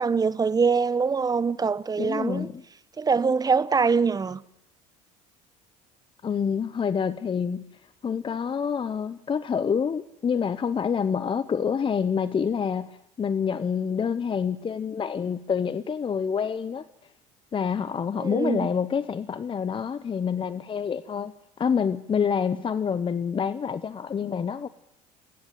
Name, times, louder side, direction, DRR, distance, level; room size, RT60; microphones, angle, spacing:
voice 1, 0.0-2.5 3.0-4.4 18.2-18.7, right 5 dB, 20° right, 1.1 m, -23 dB
voice 2, 2.0-2.6 6.2-7.6 8.0-16.9 17.5-24.7, left 6 dB, 30° left, 0.9 m, -27 dB
27.5 x 10.5 x 9.2 m
supercardioid pair, 85°, 17 cm